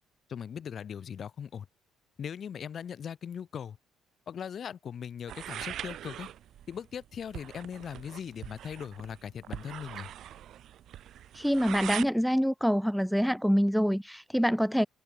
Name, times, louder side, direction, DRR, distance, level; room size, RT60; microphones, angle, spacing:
voice 1, 0.3-1.7 2.2-3.8 4.3-6.3 6.7-10.1, left 8 dB, 40° left, 1.6 m, -39 dB
sound 1, 5.3-12.1, right 11 dB, 55° right, 1.6 m, -42 dB
voice 2, 11.3-14.9, equal, ahead, 0.4 m, -26 dB
cardioid pair, 140°, 0 cm